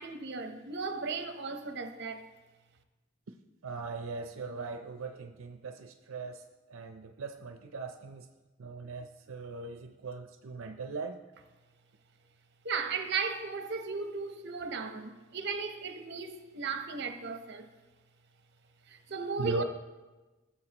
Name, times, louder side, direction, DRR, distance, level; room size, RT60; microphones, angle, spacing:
voice 1, 0.0-2.3 12.6-17.7 18.9-19.6, right 4 dB, 55° right, 0.8 m, -36 dB
voice 2, 3.6-8.3 8.6-11.2 19.4-19.6, right 3 dB, 85° right, 0.6 m, -39 dB
16.5 x 7.2 x 2.9 m
head